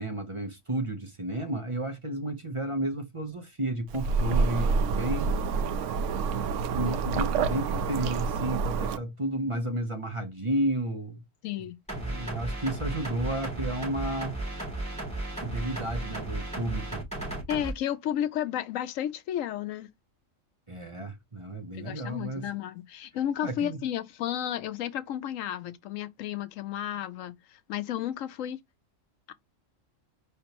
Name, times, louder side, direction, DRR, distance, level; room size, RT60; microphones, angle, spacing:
voice 1, 0.0-5.3 6.7-11.2 11.9-14.4 15.4-17.0 20.7-22.5 23.4-23.8, right 1 dB, 30° right, 0.8 m, -32 dB
sound 1, 3.9-9.0, right 4 dB, 75° right, 0.9 m, -28 dB
voice 2, 11.4-11.8 17.5-19.9 21.7-28.6 29.3-29.4, left 11 dB, 85° left, 1.0 m, -32 dB
sound 2, 11.9-17.7, right 2 dB, 5° left, 3.0 m, -35 dB
5.3 x 3.3 x 2.9 m
omnidirectional pair, 1.3 m